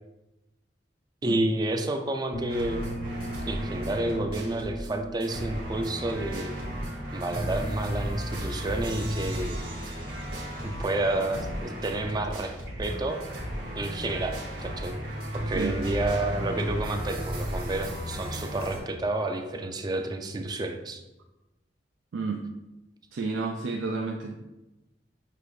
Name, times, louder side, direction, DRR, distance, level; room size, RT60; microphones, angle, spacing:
voice 1, 1.2-3.0 3.5-6.5 7.1-9.6 10.6-13.2 13.8-14.4 14.6-15.0 15.3-21.0, right 2 dB, 20° right, 5 dB, 0.4 m, -30 dB
sound 1, 2.3-12.0, right 1 dB, 65° left, 0.8 m, -41 dB
sound 2, 2.5-4.9 5.2-18.8, equal, 55° right, 1.4 m, -34 dB
voice 2, 22.1-22.4 23.1-24.4, right 4 dB, 90° right, 1 dB, 0.4 m, -31 dB
6.6 x 2.5 x 3.2 m, 1.0 s
head